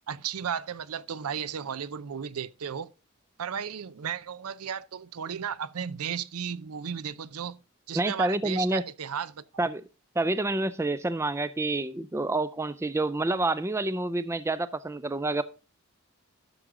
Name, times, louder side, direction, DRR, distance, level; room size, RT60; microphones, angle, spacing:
voice 1, 0.1-2.9 3.4-7.6 7.9-9.7, right 8 dB, 90° right, 0.5 m, -34 dB
voice 2, 7.9-8.8 9.6-9.8 10.2-15.4, right 2 dB, 10° right, 0.3 m, -28 dB
12.0 x 6.2 x 3.7 m
head